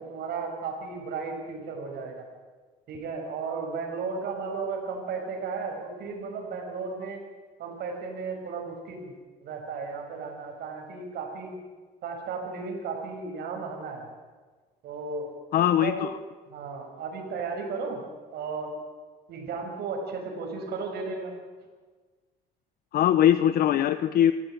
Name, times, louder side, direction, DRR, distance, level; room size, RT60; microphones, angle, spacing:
voice 1, 0.0-2.1 2.9-7.2 7.6-9.1 9.4-11.5 12.0-14.1 14.8-15.3 15.8-16.1 16.5-18.0 18.3-18.7 19.3-21.3, right 4 dB, 70° right, 1 dB, 6.4 m, -34 dB
voice 2, 15.5-16.2 22.9-24.3, left 11 dB, 65° left, 12 dB, 1.0 m, -21 dB
28.0 x 15.5 x 9.4 m, 1.4 s
cardioid pair, 110°, 17 cm